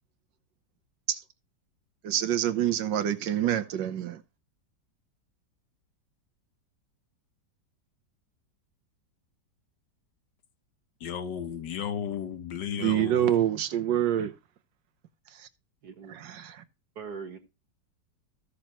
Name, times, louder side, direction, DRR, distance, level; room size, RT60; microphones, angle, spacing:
voice 1, 2.0-4.2 12.8-14.3 15.4-15.5 16.1-16.6, right 11 dB, 85° right, 1.6 m, -26 dB
voice 2, 11.0-13.3, left 8 dB, 75° left, 1.7 m, -34 dB
voice 3, 15.8-16.2 17.0-17.4, right 5 dB, 65° right, 2.0 m, -41 dB
15.0 x 6.5 x 2.9 m
omnidirectional pair, 1.9 m